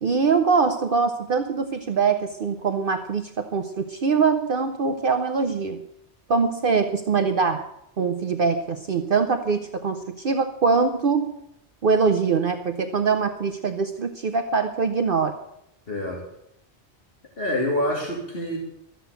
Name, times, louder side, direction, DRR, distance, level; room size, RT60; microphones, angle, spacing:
voice 1, 0.0-5.8 6.3-7.7 8.0-11.3 11.8-15.3, right 5 dB, 55° right, 7 dB, 0.9 m, -23 dB
voice 2, 15.9-16.2 17.4-18.6, left 1 dB, 55° left, -1 dB, 2.6 m, -26 dB
14.0 x 7.7 x 8.1 m, 0.78 s
omnidirectional pair, 1.2 m